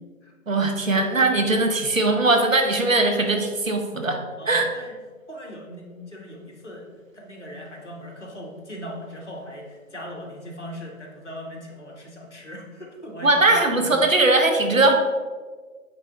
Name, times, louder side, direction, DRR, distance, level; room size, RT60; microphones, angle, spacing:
voice 1, 0.5-4.7 13.2-15.0, right 2 dB, 65° right, 4 dB, 1.0 m, -20 dB
voice 2, 4.4-4.9 5.3-14.0, equal, 55° left, -1 dB, 1.4 m, -39 dB
9.1 x 3.1 x 3.4 m, 1.5 s
figure-of-eight pair, 160°, 43 cm